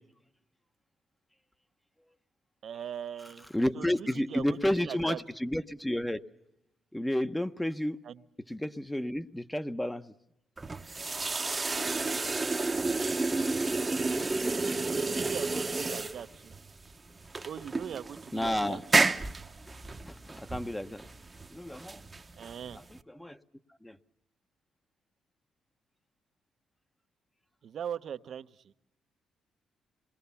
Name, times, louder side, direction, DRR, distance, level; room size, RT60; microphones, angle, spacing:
voice 1, 2.6-3.5 3.7-5.2 8.0-8.2 11.7-12.2 14.8-16.5 17.4-18.8 22.4-22.8 27.6-28.6, right 8 dB, 65° right, 0.8 m, -41 dB
voice 2, 3.5-6.2 6.9-8.0 8.5-10.1 18.3-18.9 20.0-21.0 21.5-22.0 22.9-23.4 23.8-24.0, left 1 dB, 5° left, 0.9 m, -31 dB
sound 1, 10.6-23.0, right 3 dB, 25° right, 0.9 m, -31 dB
26.5 x 21.5 x 7.0 m
cardioid pair, 85°, 0 cm